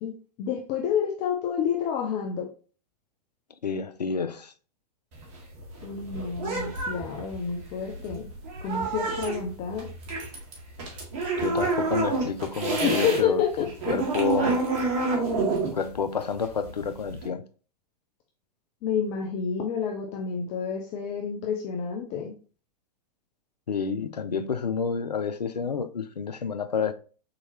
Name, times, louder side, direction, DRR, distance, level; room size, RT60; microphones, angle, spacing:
voice 1, 0.0-2.5 5.8-8.3 8.6-9.9 12.8-13.7 18.8-22.3, left 7 dB, 35° left, 0.6 m, -29 dB
voice 2, 3.6-4.5 11.4-13.4 13.9-14.5 15.7-17.4 23.7-26.9, left 6 dB, 80° left, 0.5 m, -29 dB
sound 1, 5.1-13.2 13.5-17.3, right 3 dB, 50° right, 1.7 m, -28 dB
4.3 x 3.8 x 2.8 m
figure-of-eight pair, 100°, 21 cm